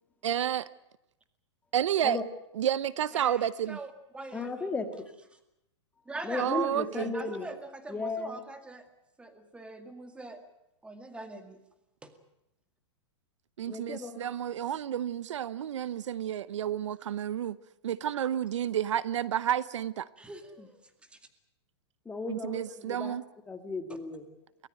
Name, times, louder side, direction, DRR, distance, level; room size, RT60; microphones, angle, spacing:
voice 1, 0.2-0.7 1.7-2.2 2.6-3.8 6.4-7.1 13.6-17.6 17.8-20.1 22.3-23.2, right 10 dB, 80° right, 0.8 m, -30 dB
voice 2, 3.1-4.7 6.1-6.5 6.9-8.9 9.2-10.4 10.8-11.6 12.0-12.1 20.2-20.7, right 2 dB, 5° right, 2.1 m, -43 dB
voice 3, 4.3-5.1 6.2-7.5 7.9-8.4 13.6-14.2 20.6-20.7 22.1-23.2 23.5-24.3, left 3 dB, 10° left, 1.9 m, -35 dB
23.5 x 16.5 x 9.1 m
hypercardioid pair, 140°, 15 cm